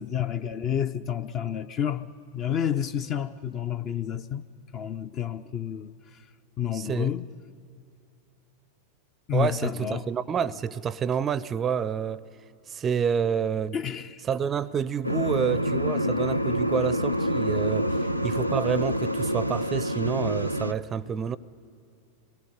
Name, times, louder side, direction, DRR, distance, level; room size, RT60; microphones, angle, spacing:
voice 1, 0.0-2.1 2.3-4.5 4.7-6.3 6.6-7.3 9.3-10.1 13.7-14.2, left 9 dB, 35° left, 0.6 m, -30 dB
voice 2, 6.7-7.1 9.3-12.3 12.7-13.8 14.3-21.4, right 7 dB, 25° right, 0.5 m, -28 dB
sound 1, 15.0-20.7, equal, 90° left, 0.6 m, -27 dB
25.0 x 19.0 x 9.6 m
figure-of-eight pair, 90°, 0 cm